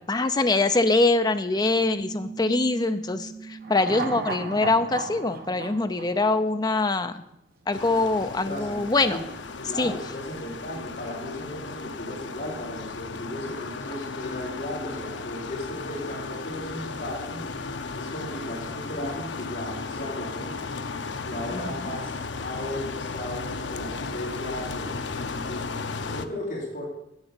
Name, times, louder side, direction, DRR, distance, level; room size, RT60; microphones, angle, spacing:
voice 1, 0.1-7.2 7.7-9.2 9.8-9.9 21.5-21.9, left 2 dB, 20° left, 9 dB, 0.6 m, -24 dB
Piano, 1.6-6.7, right 5 dB, 85° right, 1.4 m, -42 dB
sound 1, 3.6-7.0 7.3-7.4, right 3 dB, 55° right, 1.1 m, -35 dB
sound 2, 7.7-26.3, left 4 dB, 80° left, 0.7 m, -35 dB
voice 2, 8.4-9.2 9.7-17.4 18.0-20.5 21.2-25.7 26.1-26.8, left 1 dB, 50° left, -4 dB, 3.8 m, -36 dB
8.4 x 8.1 x 7.0 m, 0.82 s
head